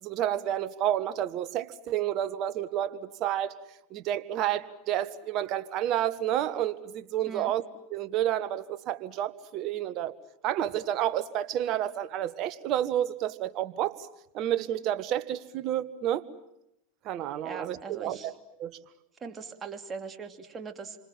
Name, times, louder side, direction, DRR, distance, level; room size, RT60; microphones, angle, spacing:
voice 1, 0.0-3.5 3.9-7.6 7.9-10.1 10.4-14.1 14.3-16.3 17.0-18.3 18.6-18.8, right 11 dB, 45° right, 13 dB, 1.5 m, -30 dB
voice 2, 17.4-18.3 19.2-21.0, right 5 dB, 25° right, 6 dB, 2.8 m, -40 dB
28.0 x 26.0 x 7.6 m, 0.84 s
hypercardioid pair, 90°, 0 cm